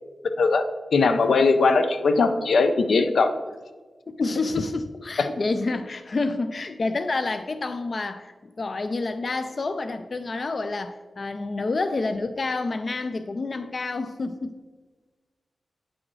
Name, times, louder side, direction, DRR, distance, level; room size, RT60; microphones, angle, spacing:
voice 1, 0.9-3.3 5.2-5.3, left 4 dB, 85° left, 8 dB, 0.6 m, -20 dB
voice 2, 4.1-14.6, left 3 dB, 40° left, 9 dB, 0.3 m, -28 dB
8.8 x 6.2 x 3.1 m, 1.3 s
wide cardioid pair, 160°, 0 cm